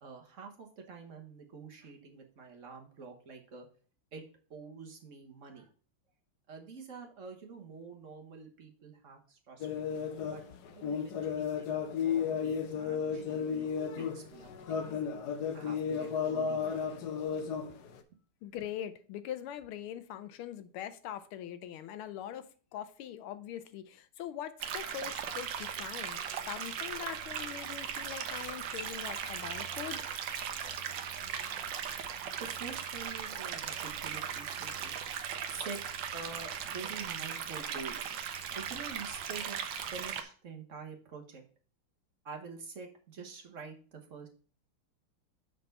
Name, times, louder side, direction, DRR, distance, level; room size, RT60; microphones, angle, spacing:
voice 1, 0.0-3.7 4.1-4.2 4.5-5.7 6.5-9.7 10.3-10.4 10.7-14.5 15.5-17.0 32.4-34.9 35.5-35.8 36.1-38.0 38.5-39.6 39.9-41.4 42.2-44.3, right 4 dB, 40° right, 1.3 m, -47 dB
sound 1, 9.6-18.0, left 7 dB, 65° left, 1.0 m, -34 dB
voice 2, 18.4-26.2 26.5-30.0, left 10 dB, 85° left, 1.6 m, -42 dB
sound 2, 24.6-40.2, right 8 dB, 65° right, 1.3 m, -38 dB
6.7 x 4.2 x 5.3 m
omnidirectional pair, 2.4 m